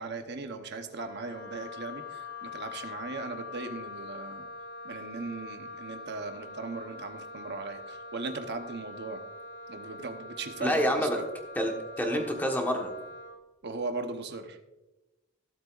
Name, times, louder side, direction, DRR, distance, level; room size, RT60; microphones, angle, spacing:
voice 1, 0.0-4.5 4.8-9.2 9.7-11.2 13.6-14.6, right 3 dB, 50° right, 6 dB, 1.0 m, -38 dB
Wind instrument woodwind instrument, 0.9-13.4, left 3 dB, 55° left, 3.8 m, -44 dB
voice 2, 10.6-11.2 11.5-12.9, equal, 10° left, 2 dB, 1.3 m, -28 dB
16.0 x 7.8 x 2.5 m, 1.0 s
head